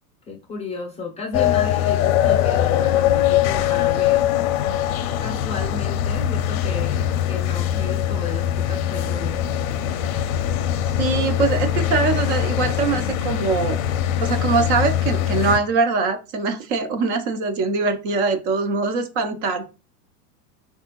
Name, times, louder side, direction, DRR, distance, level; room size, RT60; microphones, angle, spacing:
voice 1, 0.3-4.3 5.2-9.5, left 4 dB, 15° left, 0 dB, 0.5 m, -33 dB
sound 1, 1.3-15.6, left 11 dB, 60° left, 0.5 m, -22 dB
voice 2, 11.0-13.8 14.2-19.7, right 4 dB, 50° right, 7 dB, 0.6 m, -22 dB
3.4 x 2.4 x 2.9 m, 0.30 s
hypercardioid pair, 120°, 48 cm